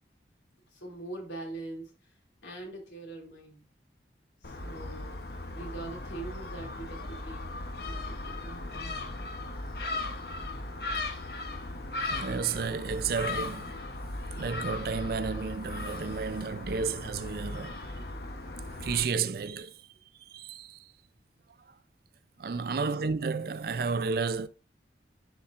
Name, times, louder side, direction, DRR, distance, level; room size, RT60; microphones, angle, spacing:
voice 1, 0.7-1.9 2.4-3.7 4.4-8.9 18.0-18.1, right 2 dB, 85° left, 2.6 m, -43 dB
Gull seagull, 4.4-19.0, left 2 dB, 60° left, 0.9 m, -37 dB
voice 2, 12.1-13.9 14.4-17.9 18.8-19.9 20.3-20.9 22.4-24.5, right 5 dB, 55° right, 0.4 m, -32 dB
10.5 x 4.3 x 2.5 m
head